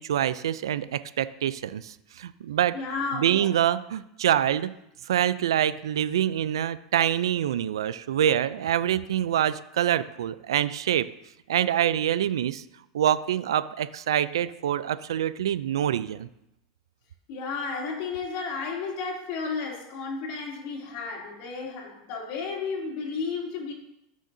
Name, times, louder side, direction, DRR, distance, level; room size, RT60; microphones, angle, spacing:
voice 1, 0.0-2.8 3.1-4.7 5.0-11.1 11.5-12.6 12.9-16.3, right 10 dB, 90° right, 15 dB, 0.4 m, -25 dB
voice 2, 2.7-3.5 17.3-23.7, left 4 dB, 55° left, -1 dB, 2.9 m, -33 dB
13.5 x 6.4 x 2.7 m, 0.82 s
supercardioid pair, 120°, 2 cm